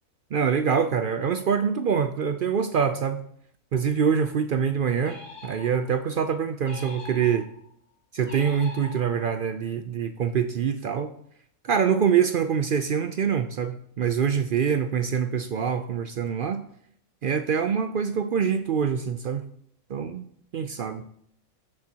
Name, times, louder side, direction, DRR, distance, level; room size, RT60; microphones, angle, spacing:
voice 1, 0.3-3.2 3.7-7.5 8.1-11.1 11.6-16.6 17.2-19.5 19.9-20.3 20.5-21.0, right 7 dB, 70° right, 9 dB, 0.5 m, -25 dB
sound 1, 5.0-6.0 6.6-7.7 8.2-9.4, left 2 dB, 60° left, 3.4 m, -43 dB
14.5 x 6.5 x 2.9 m, 0.66 s
omnidirectional pair, 1.4 m